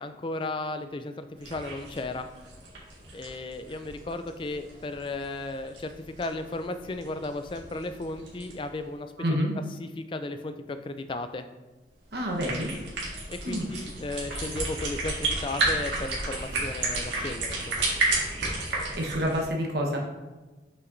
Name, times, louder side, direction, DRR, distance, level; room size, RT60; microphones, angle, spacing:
voice 1, 0.0-2.3 3.1-9.1 9.8-11.5 13.3-17.8, left 2 dB, 25° left, 9 dB, 0.3 m, -35 dB
sound 1, 1.4-8.7 12.1-19.4, right 2 dB, 80° right, 1.8 m, -33 dB
voice 2, 9.2-9.5 12.1-12.7 13.4-13.6 18.8-20.0, equal, 60° right, 0 dB, 1.1 m, -28 dB
6.6 x 5.6 x 2.6 m, 1.2 s
head